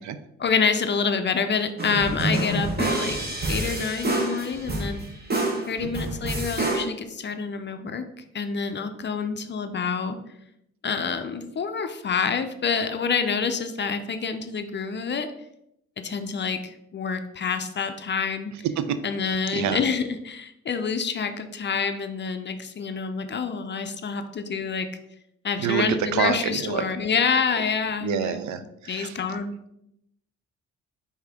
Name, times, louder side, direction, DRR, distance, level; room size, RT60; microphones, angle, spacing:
voice 1, 0.4-5.0 5.7-8.0 8.3-10.2 10.8-15.3 16.0-18.5 19.0-24.9 25.4-28.4 28.9-29.5, left 5 dB, 35° left, 8 dB, 0.5 m, -27 dB
sound 1, 1.8-6.8, right 2 dB, 30° right, 1.1 m, -27 dB
voice 2, 19.2-19.8 25.6-25.8 26.1-26.8 28.0-29.4, right 9 dB, 65° right, 11 dB, 0.5 m, -28 dB
4.8 x 2.8 x 3.5 m, 0.79 s
supercardioid pair, 60°, 31 cm